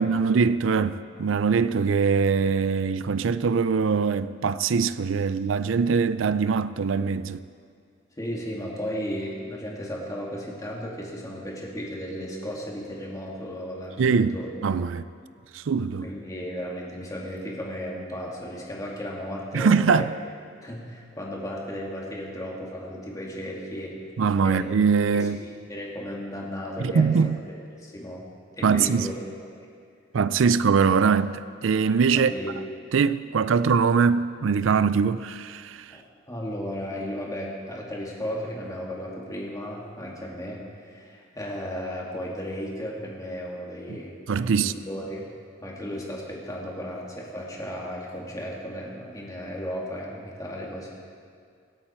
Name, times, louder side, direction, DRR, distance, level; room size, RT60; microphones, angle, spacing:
voice 1, 0.0-7.4 14.0-14.4 14.6-15.0 15.5-16.1 19.5-20.1 24.2-25.4 26.8-27.4 28.6-29.1 30.1-32.3 32.9-35.9 44.3-44.7, right 5 dB, 85° right, 0.4 m, -22 dB
voice 2, 8.2-14.5 16.0-20.1 20.6-24.0 24.4-24.7 25.1-27.1 27.7-28.3 28.5-29.1 32.2-32.5 35.9-44.1 44.6-45.3 45.6-50.9, equal, 20° left, 2.4 m, -35 dB
24.5 x 8.7 x 4.5 m
head